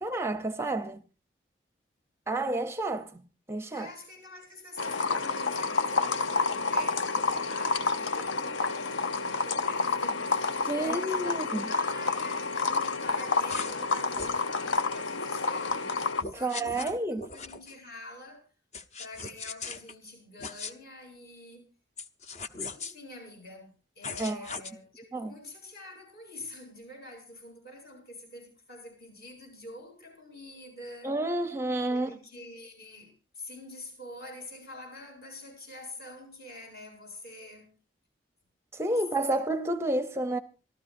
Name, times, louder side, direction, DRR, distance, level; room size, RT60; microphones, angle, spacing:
voice 1, 0.0-1.0 2.3-3.2 3.5-3.9 10.6-11.7 16.4-17.2 24.2-24.5 25.1-25.3 31.0-32.1 38.7-40.4, right 2 dB, 15° right, 0.6 m, -30 dB
voice 2, 3.7-18.4 19.0-21.7 22.7-31.1 31.9-37.8, left 1 dB, 55° left, 7.8 m, -46 dB
sound 1, 4.8-16.2, left 4 dB, 90° left, 0.8 m, -29 dB
sound 2, 13.5-13.8 14.1-14.4 16.2-17.7 18.7-19.9 20.4-20.7 22.0-22.9 24.0-24.7, left 4 dB, 35° left, 0.8 m, -39 dB
26.5 x 13.0 x 2.6 m
head